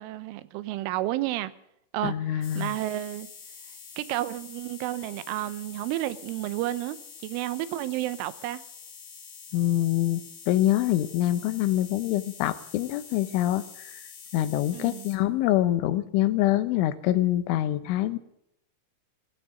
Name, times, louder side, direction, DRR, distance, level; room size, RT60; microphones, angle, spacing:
voice 1, 0.0-1.5 1.9-3.3 4.0-7.0 7.2-8.6 14.7-15.1, right 15 dB, 90° right, 3.3 m, -31 dB
voice 2, 2.0-2.8 9.5-10.2 10.5-14.0 14.3-18.2, left 14 dB, 85° left, 3.3 m, -25 dB
sound 1, 2.4-15.2, left 6 dB, 60° left, 4.2 m, -46 dB
16.5 x 16.0 x 5.2 m
omnidirectional pair, 5.5 m